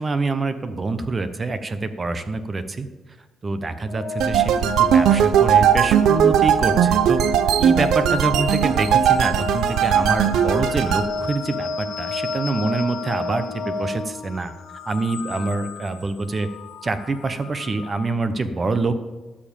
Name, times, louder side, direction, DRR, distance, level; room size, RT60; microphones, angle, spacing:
voice 1, 0.0-2.9 3.4-7.2 7.6-14.5 14.9-16.5 16.8-19.0, right 3 dB, 30° right, 10 dB, 0.9 m, -25 dB
Organ, 3.9-14.6, left 3 dB, 50° left, 1.4 m, -30 dB
sound 1, 4.2-11.1, right 9 dB, 80° right, 0.6 m, -18 dB
sound 2, 8.3-18.1, left 8 dB, 70° left, 1.3 m, -38 dB
13.0 x 5.1 x 7.2 m, 1.2 s
cardioid pair, 90°, 0 cm